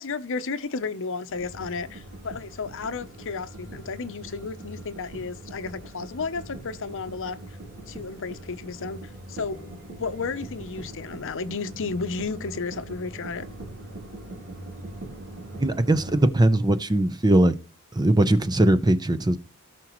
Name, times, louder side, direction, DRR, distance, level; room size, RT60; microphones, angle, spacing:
voice 1, 0.0-7.6 7.9-13.5 18.3-18.4, left 4 dB, 60° left, 0.8 m, -33 dB
sound 1, 1.3-16.3, right 1 dB, 60° right, 3.2 m, -41 dB
voice 2, 15.6-17.6 17.9-19.4, right 1 dB, 20° right, 0.7 m, -20 dB
17.5 x 6.0 x 3.1 m
head